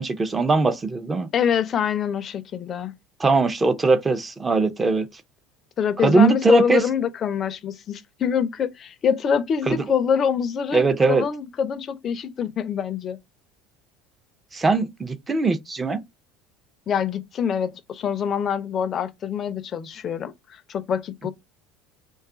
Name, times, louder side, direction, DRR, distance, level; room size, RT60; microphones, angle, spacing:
voice 1, 0.0-1.3 3.2-5.1 6.0-6.8 9.7-9.8 10.7-11.3 14.5-16.0, right 3 dB, 20° right, 0.5 m, -20 dB
voice 2, 1.3-2.9 5.8-13.2 16.9-20.3 20.7-21.3, left 7 dB, 40° left, 0.5 m, -25 dB
2.6 x 2.4 x 3.6 m
supercardioid pair, 110°, 0 cm